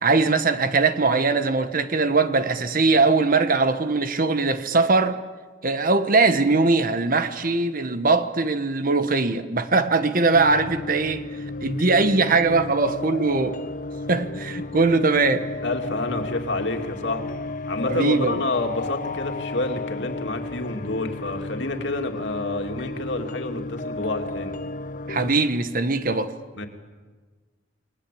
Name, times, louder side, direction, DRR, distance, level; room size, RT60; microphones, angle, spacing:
voice 1, 0.0-5.2 5.6-11.2 11.6-13.6 14.1-15.5 17.9-18.4 25.1-26.3, right 3 dB, 45° right, 1.3 m, -21 dB
Spooky Music, 10.3-25.3, left 3 dB, 40° left, 0.8 m, -33 dB
voice 2, 15.6-17.4 17.7-24.5 26.6-26.7, left 2 dB, 60° left, 2.8 m, -28 dB
29.5 x 20.0 x 8.6 m
head